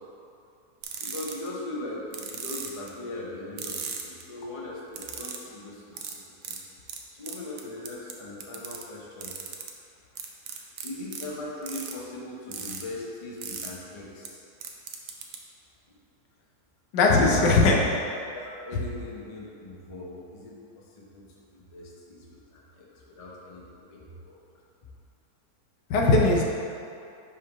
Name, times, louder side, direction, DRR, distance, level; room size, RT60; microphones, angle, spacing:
sound 1, 0.8-1.5 2.1-2.9 3.6-4.2 4.9-5.4 6.0-6.1 6.4-6.6 6.9-7.0 7.2-8.1 8.4-8.8 9.2-9.7 10.2-11.2 11.6-11.9 12.5-12.8 13.4-13.7 14.3-14.4 14.6-15.4, right 7 dB, 70° right, 0.9 m, -36 dB
voice 1, 1.0-6.2 6.5-6.6 7.1-9.4 10.5-14.4 17.2-17.7 18.3-21.2 21.5-24.4, left 2 dB, 40° left, -3 dB, 0.4 m, -40 dB
voice 2, 16.9-17.8 25.9-26.4, left 3 dB, 85° left, -1 dB, 1.4 m, -19 dB
5.4 x 3.3 x 5.3 m, 2.6 s
omnidirectional pair, 1.8 m